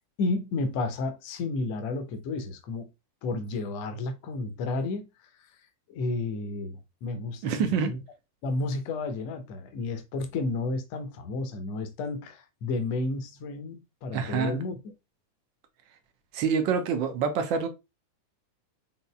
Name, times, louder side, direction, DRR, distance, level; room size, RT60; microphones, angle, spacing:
voice 1, 0.2-2.9 3.2-5.0 5.9-8.0 8.4-14.8, left 3 dB, 45° left, 0.8 m, -32 dB
voice 2, 7.4-7.9 14.1-14.6 16.3-17.7, right 6 dB, 45° right, 0.9 m, -26 dB
4.1 x 3.8 x 2.3 m
figure-of-eight pair, 90°, 0 cm